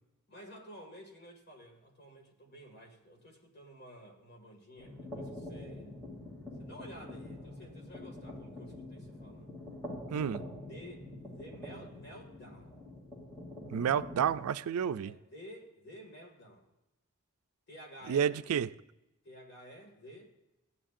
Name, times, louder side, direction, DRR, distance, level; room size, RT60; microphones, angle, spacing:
voice 1, 0.3-5.9 6.6-9.5 10.2-12.8 15.0-16.7 17.7-18.4 19.2-20.3, equal, 45° left, 2.0 m, -52 dB
sound 1, 4.8-14.4, left 1 dB, 15° left, 2.6 m, -45 dB
voice 2, 13.7-15.1 18.1-18.7, right 8 dB, 85° right, 0.4 m, -30 dB
16.0 x 10.0 x 2.5 m
head